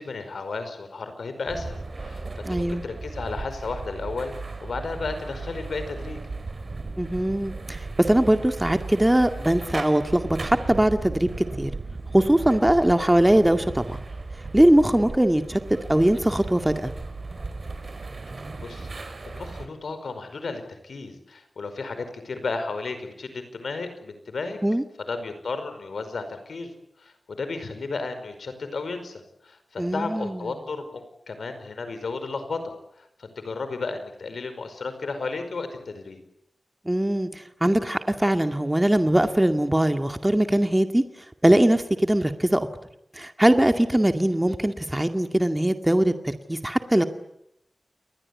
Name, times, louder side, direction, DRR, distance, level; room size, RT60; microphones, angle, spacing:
voice 1, 0.0-2.2 2.5-4.3 4.6-6.2 18.3-24.6 25.1-26.7 27.0-36.2, left 4 dB, 85° left, 9 dB, 5.1 m, -33 dB
sound 1, 1.5-19.7, right 3 dB, 60° right, 4.5 m, -36 dB
voice 2, 2.5-2.8 7.0-11.3 11.6-11.7 12.1-14.0 14.5-15.6 15.9-16.9 24.6-24.8 29.8-30.4 36.9-41.0 41.4-42.7 43.1-47.0, right 1 dB, 15° right, 7 dB, 2.1 m, -21 dB
29.5 x 20.5 x 8.5 m, 0.78 s
cardioid pair, 50°, 0 cm